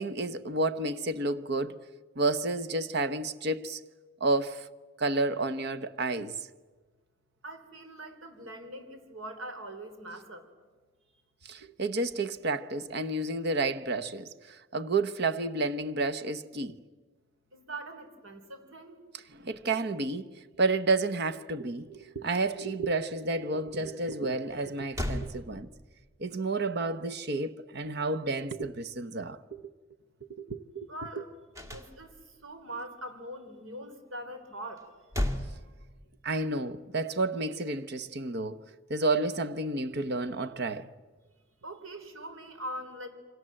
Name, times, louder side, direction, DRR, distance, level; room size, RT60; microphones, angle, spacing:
voice 1, 0.0-1.8 2.2-3.8 4.2-4.7 5.0-6.4 11.4-16.8 19.3-25.7 26.2-29.6 30.3-30.9 31.2-31.3 36.2-38.6 38.9-40.9, right 3 dB, 55° right, 1.0 m, -31 dB
voice 2, 7.4-10.4 17.5-19.0 30.9-31.3 31.6-34.9 41.6-43.1, right 1 dB, 85° right, 4.1 m, -42 dB
sound 1, 24.5-24.6 24.9-26.1 31.5-32.4 34.8-36.4, left 1 dB, 15° right, 2.1 m, -35 dB
28.5 x 25.0 x 7.7 m
head